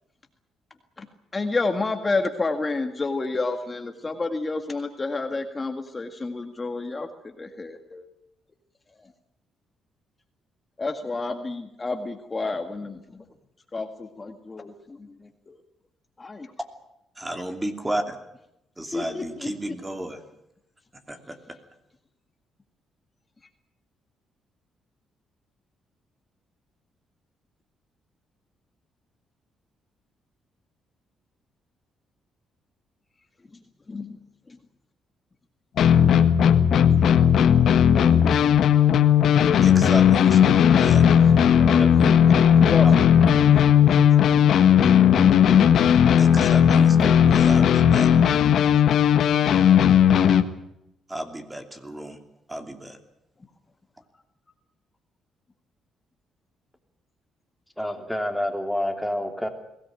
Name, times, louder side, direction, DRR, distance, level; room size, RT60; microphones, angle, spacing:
voice 1, 1.3-8.1 10.8-13.2 13.7-15.6 16.2-16.5 18.9-19.7 33.9-34.2 34.5-34.6 40.6-41.1 41.5-42.3 42.7-44.0, left 3 dB, 25° left, 6 dB, 1.9 m, -30 dB
voice 2, 17.2-18.2 18.8-20.2 21.1-21.6 39.6-41.1 41.9-42.2 42.8-43.0 46.2-48.1 51.1-52.2 52.5-53.0, right 1 dB, 15° right, 6 dB, 2.8 m, -33 dB
sound 1, 35.8-50.4, left 8 dB, 70° left, 1.5 m, -16 dB
voice 3, 57.8-59.5, left 1 dB, 5° left, 5 dB, 3.3 m, -28 dB
22.0 x 17.5 x 9.0 m, 0.83 s
cardioid pair, 90°, 0 cm